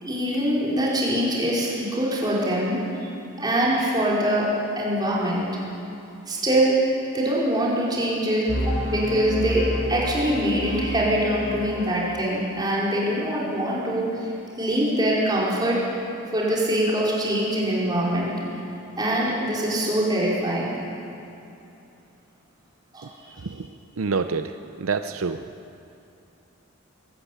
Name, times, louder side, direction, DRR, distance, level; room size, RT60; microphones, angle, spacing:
voice 1, 0.0-3.1 3.4-4.5 4.8-5.5 6.3-6.8 7.1-9.6 9.9-14.3 14.6-15.8 16.3-18.3 19.0-20.7 22.9-23.3, right 1 dB, 20° right, -6 dB, 4.8 m, -23 dB
sound 1, 8.5-12.4, equal, 75° left, 3.8 m, -30 dB
voice 2, 24.0-24.5 24.8-25.4, right 4 dB, 80° right, 8 dB, 0.6 m, -26 dB
22.5 x 13.5 x 8.7 m, 2.8 s
head